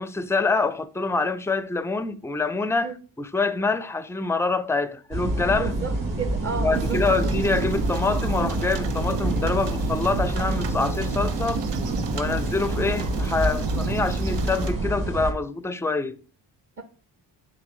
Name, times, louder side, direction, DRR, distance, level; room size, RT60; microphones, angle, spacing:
voice 1, 0.0-2.9 3.2-5.7 6.5-11.6 12.1-16.2, left 3 dB, 5° left, 0.4 m, -26 dB
sound 1, 5.1-15.3, right 1 dB, 50° right, 2.2 m, -27 dB
voice 2, 5.5-7.3 12.2-12.5 16.8-16.9, right 5 dB, 30° right, 0.9 m, -33 dB
sound 2, 6.7-14.7, right 6 dB, 70° right, 0.9 m, -33 dB
9.1 x 3.8 x 3.7 m
cardioid pair, 70°, 43 cm